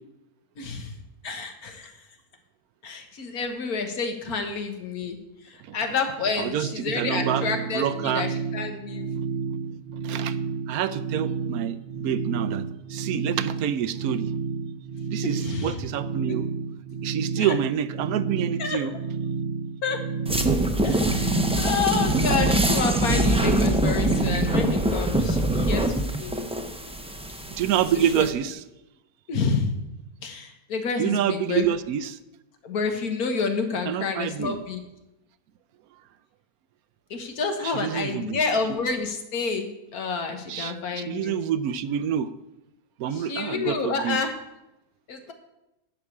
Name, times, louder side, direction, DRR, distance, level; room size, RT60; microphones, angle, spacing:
voice 1, 0.6-1.0 1.2-2.0 2.8-5.2 5.4-9.1 15.2-15.8 16.3-16.4 17.4-17.5 18.6-18.8 19.8-20.0 20.8-26.3 27.9-28.3 29.3-29.7 30.2-31.7 32.6-34.8 37.1-39.7 39.9-41.4 43.1-44.3 45.1-45.3, left 4 dB, 80° left, 5 dB, 1.8 m, -29 dB
voice 2, 6.4-8.3 10.0-10.4 10.7-14.3 15.1-16.5 17.0-18.9 27.5-28.6 31.0-32.2 33.9-34.6 37.6-38.4 40.5-42.3 43.0-44.2, right 9 dB, 85° right, 14 dB, 1.1 m, -27 dB
sound 1, 6.6-24.8, right 5 dB, 70° right, 0.5 m, -31 dB
sound 2, 20.3-28.3, right 1 dB, 5° right, 0.5 m, -24 dB
11.0 x 5.0 x 8.4 m, 0.92 s
omnidirectional pair, 1.5 m